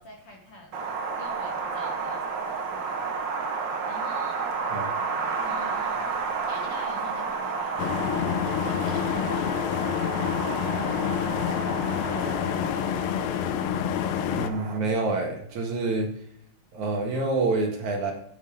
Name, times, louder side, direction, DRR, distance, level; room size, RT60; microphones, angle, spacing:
voice 1, 0.0-3.2 3.9-4.5 5.5-13.3, left 1 dB, 50° left, 0 dB, 2.1 m, -44 dB
Wind, 0.7-14.8, right 5 dB, 85° right, 1.0 m, -31 dB
sound 1, 7.8-14.5, left 9 dB, 85° left, 2.5 m, -27 dB
voice 2, 14.3-16.1 16.7-18.1, right 3 dB, 60° right, 2 dB, 2.9 m, -27 dB
9.7 x 9.6 x 5.2 m, 0.68 s
omnidirectional pair, 4.1 m